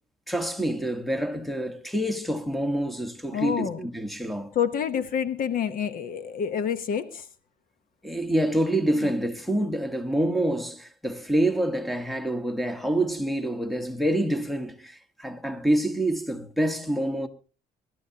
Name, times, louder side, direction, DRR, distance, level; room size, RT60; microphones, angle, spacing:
voice 1, 0.3-4.5 8.0-17.3, right 1 dB, ahead, 1.3 m, -27 dB
voice 2, 3.3-3.9 4.5-7.3 9.0-9.1, left 8 dB, 55° left, 1.0 m, -28 dB
24.0 x 12.5 x 2.9 m
cardioid pair, 110°, 17 cm